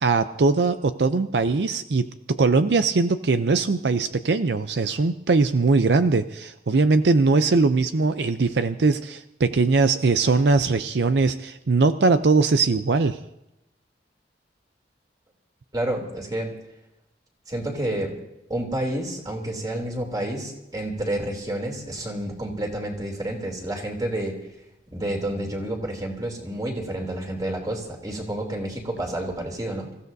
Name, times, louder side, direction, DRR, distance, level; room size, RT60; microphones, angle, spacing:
voice 1, 0.0-13.2, right 3 dB, 70° right, 11 dB, 0.5 m, -21 dB
voice 2, 15.7-16.5 17.5-18.2 18.5-24.4 24.9-29.9, right 1 dB, 20° right, 2 dB, 3.0 m, -29 dB
27.0 x 15.5 x 2.7 m, 0.87 s
head